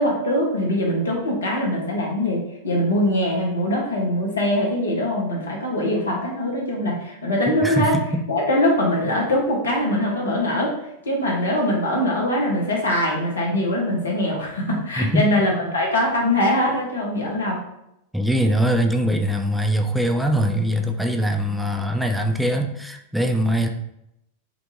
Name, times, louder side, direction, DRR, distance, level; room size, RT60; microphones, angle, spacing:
voice 1, 0.0-8.0 8.3-10.7 11.1-17.6, left 1 dB, 70° left, -2 dB, 1.0 m, -22 dB
voice 2, 7.5-8.3 15.0-15.3 18.1-23.7, equal, ahead, 4 dB, 0.4 m, -22 dB
4.5 x 2.5 x 2.6 m, 0.82 s
figure-of-eight pair, 90°, 0 cm